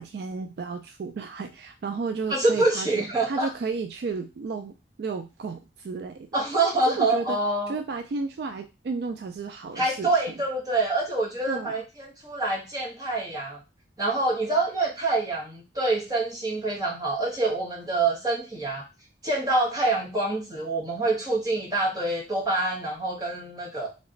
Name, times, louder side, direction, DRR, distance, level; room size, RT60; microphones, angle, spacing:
voice 1, 0.0-6.3 6.9-7.4 7.7-10.1 11.5-11.8, right 4 dB, 60° right, 8 dB, 0.3 m, -33 dB
voice 2, 2.3-3.5 6.3-7.7 9.7-13.6 14.0-18.8 19.2-23.9, right 2 dB, 20° right, -3 dB, 1.2 m, -26 dB
3.3 x 3.0 x 3.8 m, 0.28 s
head